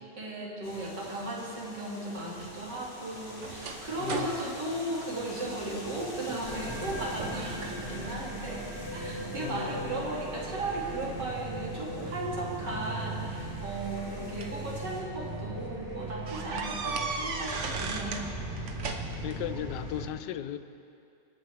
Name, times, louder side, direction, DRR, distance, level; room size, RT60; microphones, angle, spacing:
voice 1, 0.0-8.7 8.9-18.2, right 2 dB, 80° right, -4 dB, 2.9 m, -36 dB
sound 1, 0.6-15.0, left 1 dB, 30° left, 1.7 m, -47 dB
sound 2, 2.4-5.8 6.2-6.6 6.9-7.5 8.0-8.7 9.3-10.7 11.9-12.0 13.2-14.6 15.2-15.3 15.6-15.7 16.3-18.3 18.6-19.4, right 4 dB, 50° right, 1.1 m, -37 dB
voice 2, 4.0-4.6 9.4-10.2 14.2-14.4 19.2-20.6, left 11 dB, 80° left, 12 dB, 1.2 m, -37 dB
sound 3, 6.4-20.1, right 1 dB, ahead, 3.9 m, -38 dB
26.0 x 11.0 x 3.4 m, 2.6 s
omnidirectional pair, 1.8 m